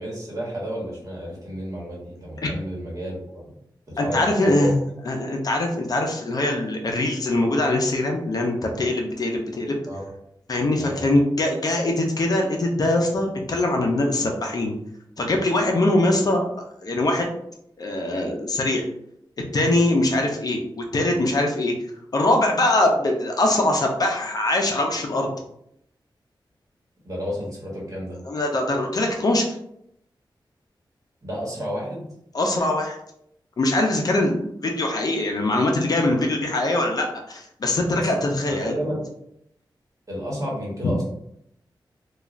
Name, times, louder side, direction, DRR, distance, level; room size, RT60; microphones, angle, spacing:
voice 1, 0.0-3.5 3.9-4.7 9.9-10.0 10.7-11.2 27.0-28.2 31.2-32.0 38.0-39.1 40.1-41.0, equal, 40° right, -4 dB, 1.1 m, -31 dB
voice 2, 4.0-4.7 5.1-9.8 10.5-14.7 15.2-16.5 16.8-17.3 17.8-18.8 19.5-21.7 22.1-25.3 28.3-29.6 32.3-33.0 33.6-38.7 40.8-40.9, left 1 dB, 50° left, 2 dB, 0.5 m, -22 dB
3.1 x 2.3 x 2.4 m, 0.75 s
wide cardioid pair, 145°, 8 cm